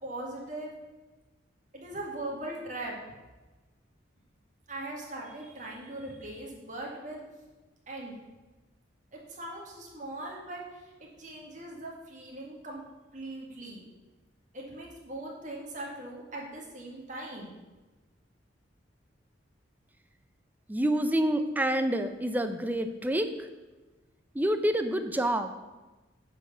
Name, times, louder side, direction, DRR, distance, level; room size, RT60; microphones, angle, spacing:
voice 1, 0.0-0.7 1.7-3.1 4.7-7.2 7.9-8.2 9.1-12.8 13.1-13.8 14.5-17.5, right 1 dB, 40° right, -2 dB, 2.0 m, -40 dB
voice 2, 20.7-23.5 24.3-25.5, right 1 dB, 10° right, 8 dB, 0.5 m, -27 dB
9.3 x 4.6 x 6.8 m, 1.2 s
head